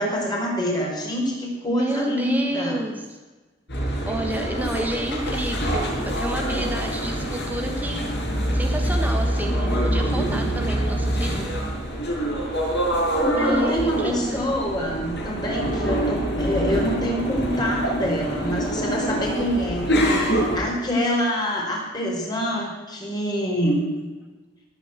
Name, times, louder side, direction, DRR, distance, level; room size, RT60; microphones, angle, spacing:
voice 1, 0.0-2.8 13.1-19.9 20.1-23.9, equal, 25° left, -2 dB, 5.4 m, -26 dB
voice 2, 1.7-3.0 4.0-8.1 8.5-11.5 13.3-14.5 19.3-19.6, right 1 dB, 10° right, 3 dB, 1.4 m, -29 dB
sound 1, 3.7-20.6, right 1 dB, 65° left, 6.8 m, -25 dB
18.5 x 9.4 x 8.3 m, 1.2 s
head